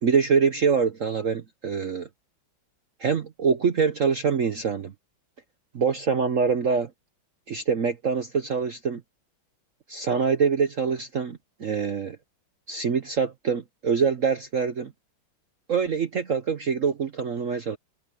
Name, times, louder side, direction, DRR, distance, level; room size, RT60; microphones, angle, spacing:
voice 1, 0.0-2.1 3.0-4.9 5.7-6.9 7.5-9.0 9.9-12.2 12.7-14.9 15.7-17.8, right 6 dB, 50° right, 1.0 m, -25 dB
omnidirectional pair, 2.3 m